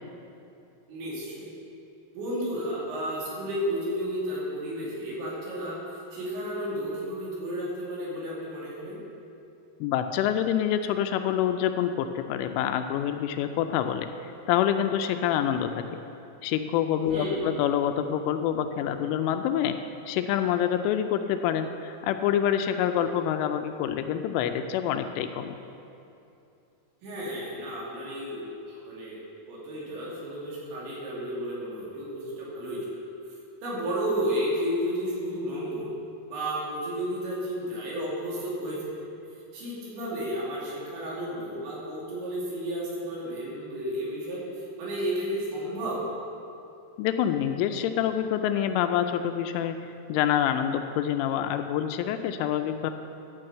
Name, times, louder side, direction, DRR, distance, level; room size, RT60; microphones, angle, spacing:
voice 1, 0.9-1.5 2.1-5.8 6.1-9.0 17.1-17.5 27.0-29.2 29.5-32.9 33.6-35.9 36.3-38.8 39.5-46.0, equal, 65° right, -6 dB, 4.7 m, -32 dB
voice 2, 9.8-14.1 14.5-16.0 16.4-19.8 20.1-25.6 47.0-52.9, left 10 dB, 85° left, 8 dB, 3.0 m, -26 dB
12.5 x 6.2 x 7.7 m, 2.7 s
omnidirectional pair, 5.7 m